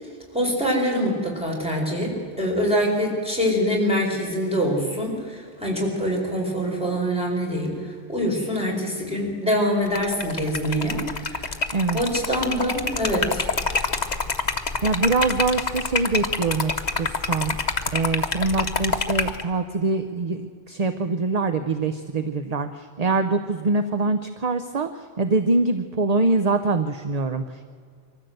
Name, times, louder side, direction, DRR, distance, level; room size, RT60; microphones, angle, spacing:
voice 1, 0.3-7.8 8.1-11.5 11.9-13.5, equal, 5° right, -2 dB, 4.6 m, -24 dB
Liquid, 9.9-19.4, left 4 dB, 40° left, 1.1 m, -27 dB
voice 2, 14.8-16.7 17.0-17.6 17.9-27.6, right 3 dB, 40° right, 9 dB, 0.8 m, -24 dB
23.5 x 14.5 x 7.9 m, 2.2 s
omnidirectional pair, 1.1 m